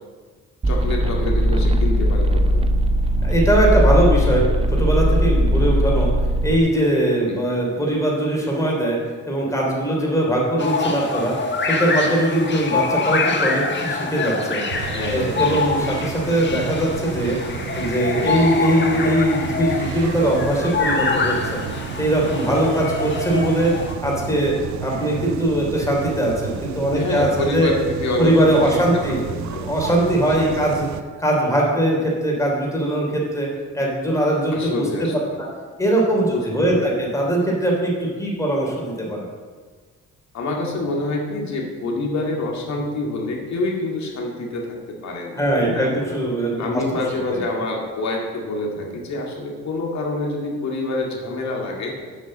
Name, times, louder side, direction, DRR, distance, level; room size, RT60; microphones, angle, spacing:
sound 1, 0.6-6.6, equal, 20° right, 0.6 m, -19 dB
voice 1, 0.7-2.6 7.3-7.4 14.8-15.6 26.9-27.7 28.0-28.3 28.7-28.8 29.3-29.7 30.3-30.5 34.5-35.1 36.3-36.8 40.3-45.9 46.6-51.9, left 2 dB, 65° left, 0 dB, 2.1 m, -27 dB
voice 2, 3.2-6.1 6.4-9.0 9.3-14.6 15.1-17.4 17.7-21.6 22.0-23.7 24.0-27.7 28.2-30.9 31.2-33.5 33.7-35.2 35.8-39.3 45.4-46.8 47.3-47.4, right 1 dB, 10° left, -2 dB, 3.2 m, -21 dB
sound 2, 10.6-23.9, left 4 dB, 40° left, 1.3 m, -25 dB
sound 3, 14.7-31.0, right 8 dB, 65° right, 0.6 m, -32 dB
8.2 x 5.3 x 7.5 m, 1.5 s
cardioid pair, 90°, 30 cm